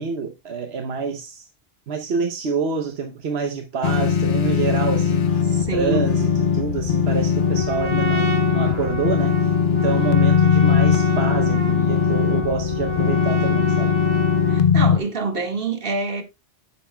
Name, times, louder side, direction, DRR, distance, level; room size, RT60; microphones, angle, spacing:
voice 1, 0.0-1.5 1.9-5.4 5.7-14.0, right 5 dB, 80° right, 1.2 m, -27 dB
sound 1, 3.8-15.0, left 7 dB, 55° left, 0.9 m, -20 dB
voice 2, 5.5-6.1 14.5-16.2, right 4 dB, 60° right, 2.0 m, -26 dB
Trumpet, 7.4-14.7, equal, 30° right, 2.0 m, -29 dB
10.5 x 8.7 x 2.3 m
omnidirectional pair, 1.0 m